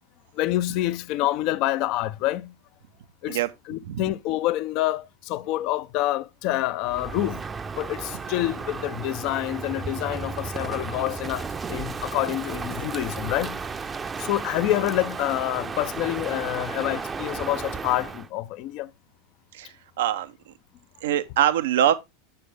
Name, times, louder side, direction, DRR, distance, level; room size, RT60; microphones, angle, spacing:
voice 1, 0.3-2.5 3.2-3.4 3.7-7.4 7.8-13.6 14.2-18.9, left 15 dB, 55° left, 0.4 m, -27 dB
Crow, 6.8-18.3, right 5 dB, 20° right, 0.5 m, -34 dB
voice 2, 19.5-20.5 21.0-21.9, right 11 dB, 70° right, 0.5 m, -24 dB
6.8 x 6.7 x 3.3 m
hypercardioid pair, 90°, 0 cm